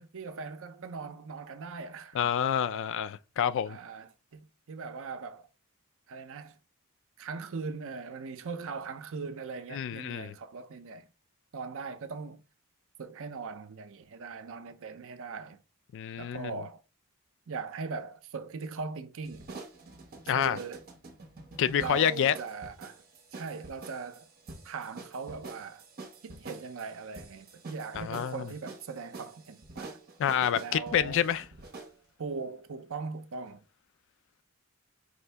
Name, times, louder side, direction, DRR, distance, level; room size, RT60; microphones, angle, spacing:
voice 1, 0.0-2.2 3.7-5.5 6.1-6.6 7.2-11.1 11.5-12.4 13.0-15.6 16.2-16.8 17.5-19.5 20.3-20.8 21.8-23.0 23.3-24.3 24.6-25.8 26.2-30.0 30.6-31.2 32.2-33.6, right 4 dB, 65° right, 0.6 m, -40 dB
voice 2, 2.1-3.8 9.7-10.3 15.9-16.5 20.3-20.6 21.6-22.4 27.9-28.4 30.2-31.4, left 9 dB, 60° left, 0.3 m, -28 dB
sound 1, 19.3-32.0, right 3 dB, 45° right, 1.0 m, -47 dB
4.9 x 2.7 x 3.3 m
head